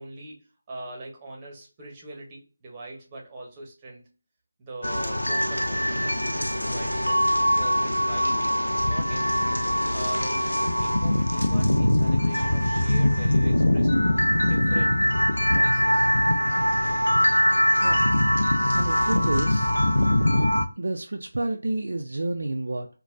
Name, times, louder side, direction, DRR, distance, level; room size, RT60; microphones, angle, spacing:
voice 1, 0.0-4.1 4.6-6.1 6.6-8.4 8.8-9.6 9.9-15.0 15.4-16.1, right 2 dB, 15° right, 0.9 m, -42 dB
sound 1, 4.8-20.7, equal, 75° left, 0.4 m, -22 dB
voice 2, 18.7-19.7 20.8-22.9, right 2 dB, 60° right, 0.4 m, -29 dB
4.0 x 2.2 x 2.3 m
figure-of-eight pair, 160°, 0 cm